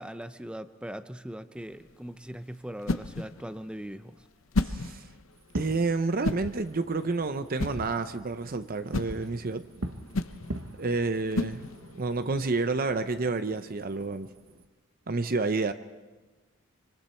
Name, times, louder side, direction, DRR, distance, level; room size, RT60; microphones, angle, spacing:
voice 1, 0.0-4.2, equal, 5° right, 0.7 m, -40 dB
sound 1, 1.6-12.1, left 2 dB, 75° left, 0.8 m, -35 dB
voice 2, 4.6-5.1 5.5-9.7 10.8-11.6 11.9-14.3 15.1-15.7, right 3 dB, 45° right, 0.7 m, -29 dB
Fireworks, 5.4-14.6, right 1 dB, 80° right, 1.3 m, -43 dB
26.0 x 25.5 x 4.4 m
head